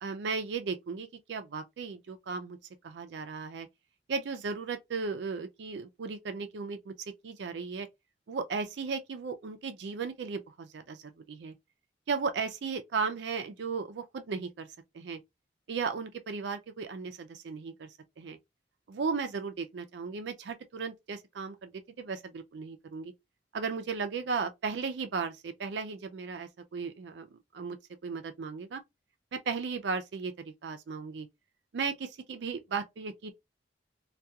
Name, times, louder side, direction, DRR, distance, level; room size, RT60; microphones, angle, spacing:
voice 1, 0.0-2.6 2.8-3.7 4.1-6.9 7.2-7.9 8.3-11.0 11.3-11.5 12.1-14.7 14.9-15.2 15.7-18.4 18.9-23.1 23.5-27.8 28.0-28.8 29.3-31.3 31.7-33.3, right 5 dB, 70° right, 0.4 m, -36 dB
2.8 x 2.3 x 2.3 m
head